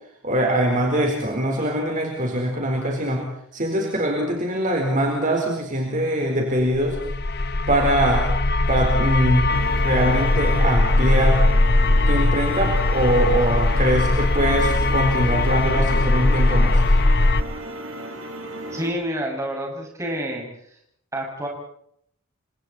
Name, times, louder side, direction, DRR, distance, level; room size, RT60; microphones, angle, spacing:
voice 1, 0.2-3.3 3.5-7.0 7.7-8.3 8.7-11.4 12.1-16.8, right 1 dB, 35° right, 0 dB, 4.5 m, -22 dB
sound 1, 6.7-17.4, left 2 dB, 45° left, 1.0 m, -20 dB
sound 2, 9.5-18.9, right 1 dB, 55° right, 5.4 m, -35 dB
voice 2, 18.7-20.4 21.1-21.5, equal, 15° right, -1 dB, 7.0 m, -28 dB
29.5 x 26.0 x 4.4 m, 0.69 s
head